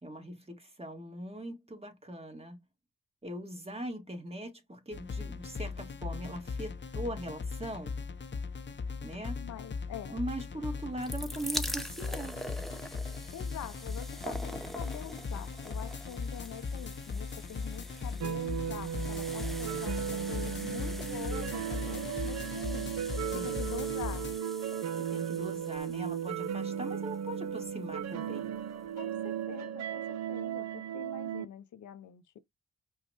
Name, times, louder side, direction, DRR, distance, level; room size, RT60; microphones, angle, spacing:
voice 1, 0.0-2.6 3.2-7.9 9.0-9.4 10.1-12.4 23.3-23.6 25.0-28.5, right 1 dB, 20° right, 1.8 m, -41 dB
sound 1, 4.9-24.4, left 4 dB, 40° left, 0.6 m, -39 dB
voice 2, 9.4-10.2 13.3-22.9 23.3-24.3 29.0-32.4, left 9 dB, 85° left, 0.6 m, -45 dB
sound 2, 10.9-27.8 28.6-28.7 28.9-29.0, equal, ahead, 0.8 m, -44 dB
sound 3, 18.2-31.4, right 8 dB, 65° right, 0.5 m, -36 dB
5.4 x 2.3 x 2.9 m
supercardioid pair, 40°, 29 cm